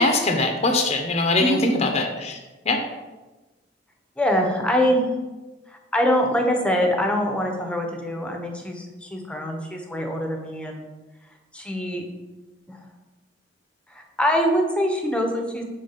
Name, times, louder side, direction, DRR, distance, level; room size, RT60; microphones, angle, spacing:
voice 1, 0.0-2.4 2.7-2.8, left 2 dB, 35° left, 4 dB, 0.6 m, -22 dB
voice 2, 1.4-1.8 4.2-5.1 5.7-10.8 11.5-12.0 12.7-12.8 13.9-15.6, equal, 5° left, 2 dB, 0.8 m, -24 dB
5.2 x 3.8 x 5.6 m, 1.2 s
head